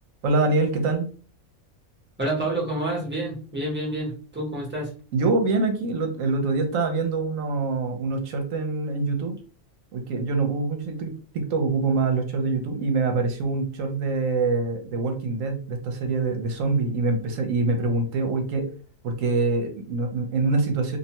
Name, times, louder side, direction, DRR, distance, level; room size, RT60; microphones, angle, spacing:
voice 1, 0.2-1.1 5.1-9.4 9.9-18.6 19.0-21.0, right 3 dB, 70° right, 5 dB, 1.0 m, -25 dB
voice 2, 2.2-4.9, right 1 dB, 10° right, -4 dB, 0.7 m, -28 dB
2.6 x 2.1 x 2.9 m, 0.39 s
omnidirectional pair, 1.5 m